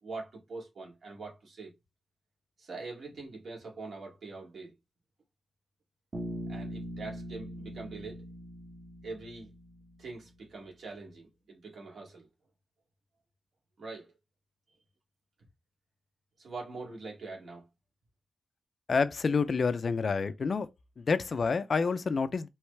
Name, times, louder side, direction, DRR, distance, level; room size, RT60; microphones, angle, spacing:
voice 1, 0.0-1.7 2.6-4.7 6.5-8.2 9.0-9.5 10.0-12.3 13.8-14.1 16.4-17.7, right 3 dB, 65° right, 2.2 m, -43 dB
Bass guitar, 6.1-10.0, equal, 40° right, 1.4 m, -41 dB
voice 2, 18.9-20.7 21.0-22.5, left 5 dB, 45° left, 0.4 m, -28 dB
4.7 x 3.1 x 3.3 m
wide cardioid pair, 165°, 0 cm